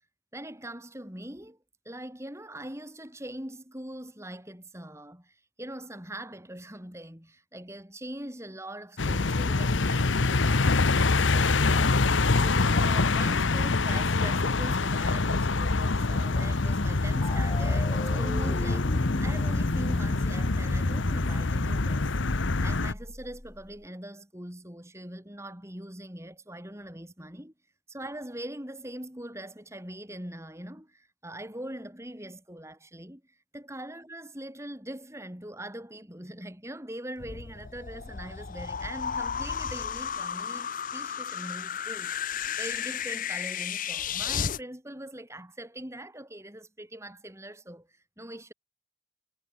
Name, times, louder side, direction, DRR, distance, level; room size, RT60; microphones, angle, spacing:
voice 1, 0.3-1.6 1.9-18.9 19.2-22.2 22.6-27.5 27.9-48.5, right 1 dB, 15° right, 5.4 m, -42 dB
sound 1, 9.0-22.9, left 3 dB, 70° left, 1.0 m, -25 dB
sound 2, 17.2-23.9, left 1 dB, 20° left, 1.9 m, -38 dB
sound 3, 37.2-44.6, left 8 dB, 40° left, 0.7 m, -33 dB
head